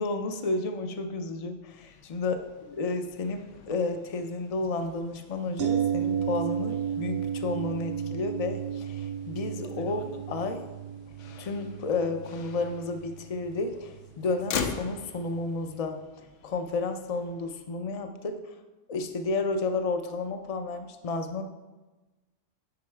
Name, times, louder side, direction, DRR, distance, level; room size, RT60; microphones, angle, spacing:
voice 1, 0.0-2.4 2.7-10.6 11.4-16.0 16.4-18.4 18.9-21.4, left 3 dB, 40° left, 7 dB, 0.6 m, -31 dB
Motor vehicle (road), 1.7-17.5, left 6 dB, 85° left, 1.0 m, -43 dB
sound 1, 5.6-15.5 15.8-15.9, right 9 dB, 65° right, 0.7 m, -34 dB
9.6 x 4.6 x 4.4 m, 1.1 s
omnidirectional pair, 1.2 m